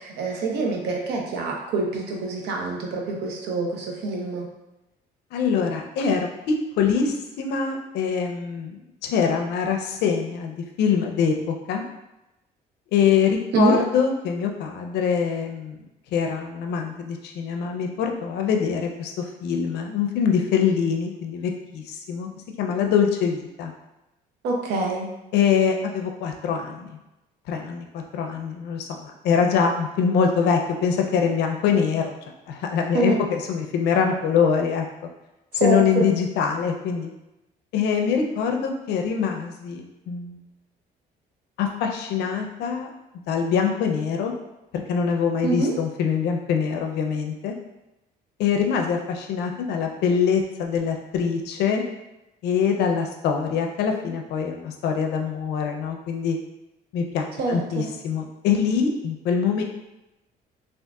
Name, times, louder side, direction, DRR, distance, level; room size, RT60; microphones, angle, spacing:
voice 1, 0.0-4.5 13.5-13.8 24.4-25.1 32.9-33.2 35.5-36.1 45.4-45.7 57.4-57.9, right 3 dB, 80° right, 0 dB, 0.7 m, -25 dB
voice 2, 5.3-11.8 12.9-15.8 16.1-22.3 22.6-23.7 25.3-26.9 27.5-32.1 32.5-34.8 35.5-37.1 37.7-40.4 41.6-42.9 43.3-44.3 44.9-47.5 48.4-51.8 52.4-56.4 56.9-57.2 57.5-59.6, left 6 dB, 80° left, 3 dB, 0.5 m, -24 dB
3.6 x 2.5 x 2.3 m, 0.94 s
cardioid pair, 110°, 17 cm